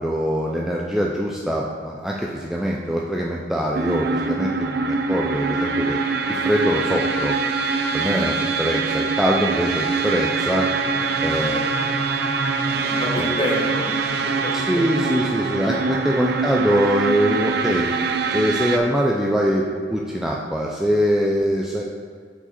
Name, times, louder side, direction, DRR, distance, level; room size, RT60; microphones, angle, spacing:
voice 1, 0.0-6.0 6.3-7.3 7.9-10.7 11.2-11.7 13.1-13.3 14.5-17.9 18.3-21.8, equal, ahead, -3 dB, 0.4 m, -23 dB
sound 1, 3.8-18.8, right 4 dB, 60° right, 0.5 m, -24 dB
voice 2, 12.6-14.8 15.6-15.8 16.4-16.6, left 1 dB, 30° left, -5 dB, 1.6 m, -29 dB
6.8 x 4.8 x 4.3 m, 2.1 s
head